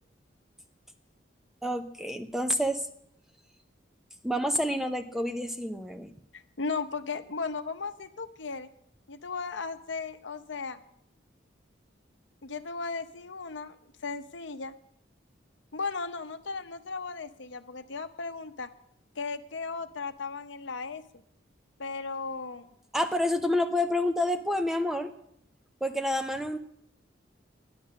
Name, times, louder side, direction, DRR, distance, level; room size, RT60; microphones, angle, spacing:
voice 1, 1.6-2.9 4.2-6.1 22.9-25.1 25.8-26.6, left 1 dB, ahead, 6 dB, 0.8 m, -28 dB
voice 2, 6.3-8.7 9.1-10.8 12.4-13.8 14.0-14.7 15.7-18.7 19.2-21.0 21.8-22.7, left 4 dB, 75° left, 9 dB, 0.9 m, -36 dB
12.5 x 10.5 x 6.3 m, 0.74 s
head